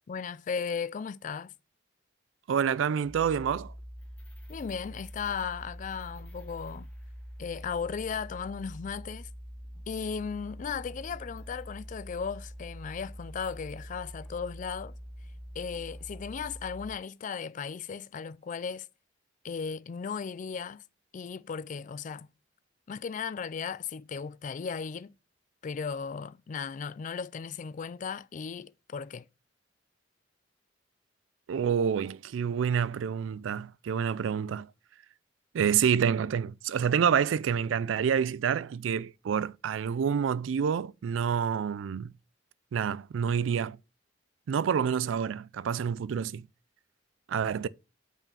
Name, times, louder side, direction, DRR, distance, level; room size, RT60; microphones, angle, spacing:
voice 1, 0.1-1.5 4.5-6.9 7.4-9.3 9.9-15.0 15.6-18.9 19.4-20.8 21.1-22.3 22.9-25.2 25.6-29.3, left 6 dB, 40° left, 0.3 m, -36 dB
voice 2, 2.5-3.7 31.5-34.7 35.5-42.1 42.7-43.8 44.5-46.5 47.3-47.7, right 7 dB, 90° right, 0.3 m, -28 dB
sound 1, 3.0-17.0, equal, 5° left, 1.2 m, -45 dB
5.5 x 4.9 x 5.3 m
head